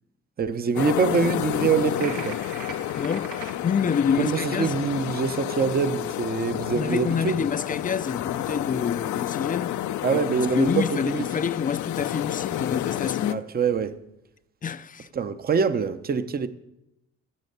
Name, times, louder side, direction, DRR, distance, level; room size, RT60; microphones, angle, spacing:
voice 1, 0.4-2.4 4.2-7.5 10.0-11.2 13.3-13.9 15.1-16.5, right 5 dB, 30° right, 0.7 m, -24 dB
sound 1, 0.8-13.4, left 12 dB, 70° left, 0.6 m, -30 dB
sound 2, 2.0-3.5, right 5 dB, 90° right, 1.5 m, -39 dB
voice 2, 3.0-4.8 6.7-9.8 10.1-13.4 14.6-15.1, left 7 dB, 30° left, 0.4 m, -27 dB
12.0 x 6.4 x 7.9 m
cardioid pair, 90°, 30 cm